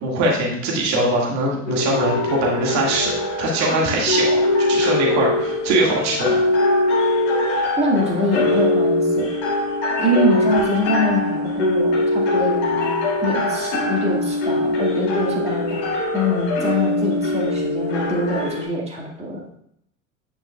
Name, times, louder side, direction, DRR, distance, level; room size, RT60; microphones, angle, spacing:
voice 1, 0.0-4.4 4.7-6.4, right 1 dB, 45° right, -2 dB, 2.0 m, -22 dB
Slow music box, 1.7-18.7, left 2 dB, 60° left, 1.8 m, -22 dB
voice 2, 7.8-9.3 10.0-12.9 13.2-15.9 16.1-19.4, left 1 dB, 15° right, -2 dB, 1.9 m, -23 dB
9.5 x 5.3 x 2.3 m, 0.72 s
figure-of-eight pair, 70°, 38 cm